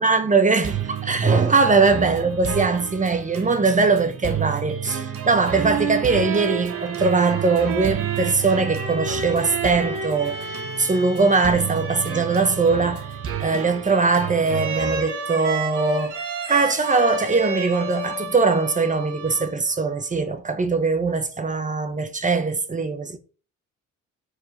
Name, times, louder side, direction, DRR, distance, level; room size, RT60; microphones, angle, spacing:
voice 1, 0.0-13.1 13.4-23.2, right 4 dB, 25° right, 1.1 m, -21 dB
sound 1, 0.6-15.0, right 9 dB, 50° right, 1.2 m, -31 dB
sound 2, 5.3-19.9, right 3 dB, 85° right, 2.2 m, -31 dB
5.0 x 4.7 x 5.2 m
cardioid pair, 90°, 30 cm